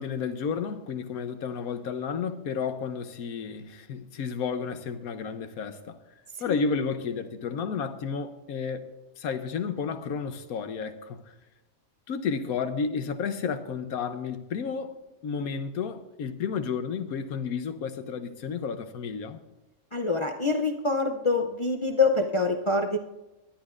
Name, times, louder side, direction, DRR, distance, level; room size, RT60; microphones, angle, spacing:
voice 1, 0.0-6.0 6.4-8.9 9.2-11.3 12.1-14.9 15.2-19.4, left 6 dB, 85° left, 1.3 m, -32 dB
voice 2, 19.9-23.0, left 3 dB, 50° left, 0.3 m, -25 dB
19.5 x 11.5 x 2.5 m
omnidirectional pair, 1.5 m